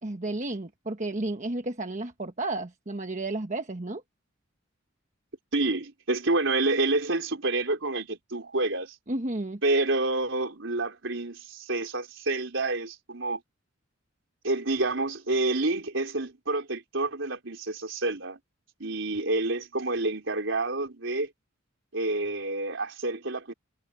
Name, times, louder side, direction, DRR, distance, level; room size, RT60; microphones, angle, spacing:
voice 1, 0.0-4.0 9.1-9.6, right 2 dB, 35° right, 1.2 m, -32 dB
voice 2, 5.5-9.0 9.6-13.4 14.4-18.4 18.8-21.3 21.9-23.5, right 2 dB, 65° right, 4.4 m, -28 dB
head